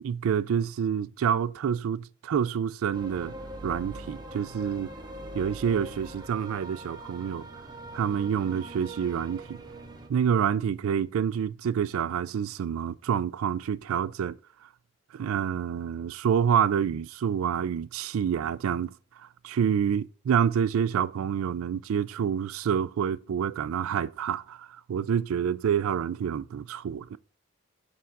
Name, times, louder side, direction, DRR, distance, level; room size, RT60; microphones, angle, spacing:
voice 1, 0.0-3.3 3.6-4.9 5.3-7.5 7.9-9.6 10.1-14.4 15.1-18.9 19.4-27.2, right 8 dB, 85° right, 0.3 m, -27 dB
sound 1, 2.9-10.1, right 1 dB, 20° right, 0.7 m, -42 dB
6.9 x 3.7 x 5.9 m
head